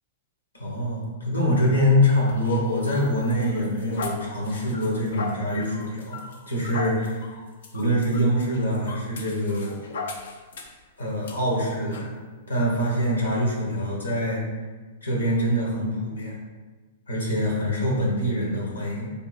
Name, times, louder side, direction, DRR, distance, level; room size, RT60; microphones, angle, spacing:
voice 1, 0.5-7.2 7.7-9.8 11.0-12.1 12.5-14.4 15.0-16.4 17.1-19.1, equal, 85° left, -3 dB, 1.3 m, -24 dB
sound 1, 2.1-10.8 11.2-11.4 11.9-12.1, left 4 dB, 65° left, 0.5 m, -38 dB
3.6 x 2.7 x 4.2 m, 1.3 s
hypercardioid pair, 110°, 0 cm